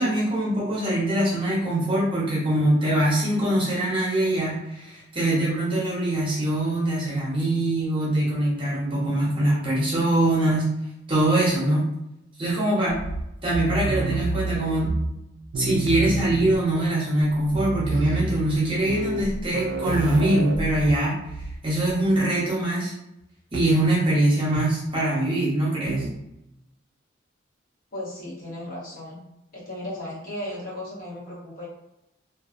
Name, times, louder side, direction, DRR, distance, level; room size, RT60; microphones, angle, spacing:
voice 1, 0.0-10.7 11.1-11.9 12.4-12.9 13.4-15.0 15.6-21.2 21.6-22.9 23.5-26.1, right 1 dB, 25° right, -7 dB, 0.8 m, -23 dB
sound 1, 12.9-15.3 15.5-16.9 17.2-17.3 17.5-21.6 21.9-22.2 23.5-23.8 24.5-24.9 25.9-26.3, right 3 dB, 75° right, 0.3 m, -29 dB
voice 2, 27.9-29.2 29.5-31.6, left 1 dB, 45° left, -6 dB, 0.8 m, -35 dB
2.3 x 2.2 x 2.4 m, 0.88 s
head